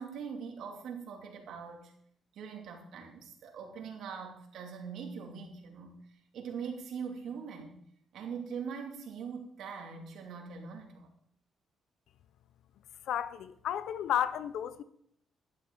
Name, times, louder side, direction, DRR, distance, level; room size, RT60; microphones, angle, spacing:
voice 1, 0.0-1.9 2.3-5.9 6.3-7.8 8.1-11.1, right 6 dB, 75° right, 2.5 m, -42 dB
voice 2, 13.1-14.8, left 10 dB, 80° left, 0.7 m, -32 dB
11.5 x 11.5 x 3.9 m
cardioid pair, 90°, 0 cm